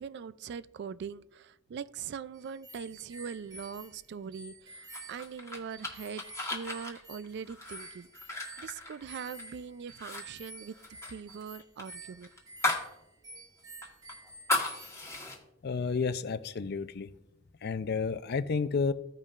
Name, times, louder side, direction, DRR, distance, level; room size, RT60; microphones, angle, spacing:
voice 1, 0.0-6.2 6.5-12.3, right 6 dB, 55° right, 16 dB, 0.3 m, -42 dB
sound 1, 2.3-15.3, right 1 dB, 20° right, 0.8 m, -50 dB
sound 2, 4.9-9.5 9.9-10.2 10.5-12.9 13.3-13.4 13.8-15.4, left 2 dB, 15° left, 1.4 m, -35 dB
voice 2, 15.6-17.1 17.6-18.9, left 5 dB, 55° left, 13 dB, 0.4 m, -31 dB
15.5 x 5.3 x 2.4 m, 0.86 s
head